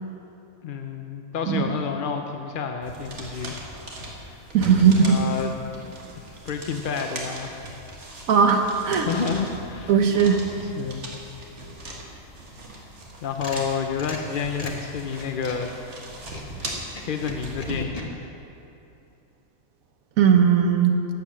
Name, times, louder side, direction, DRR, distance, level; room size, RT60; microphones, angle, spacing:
voice 1, 0.6-3.6 4.9-5.5 6.2-7.6 8.9-9.9 10.6-11.1 12.7-12.9 13.2-15.7 17.0-18.2, left 6 dB, 55° left, 4 dB, 0.6 m, -30 dB
sound 1, 2.8-17.8, right 1 dB, 55° right, 1.9 m, -39 dB
voice 2, 4.5-5.1 8.3-9.1 9.9-10.4 20.2-21.0, right 7 dB, 75° right, 5 dB, 1.3 m, -18 dB
sound 2, 13.0-15.7 16.2-18.0, left 1 dB, 30° left, 1.2 m, -38 dB
12.0 x 8.5 x 7.3 m, 2.9 s
omnidirectional pair, 1.5 m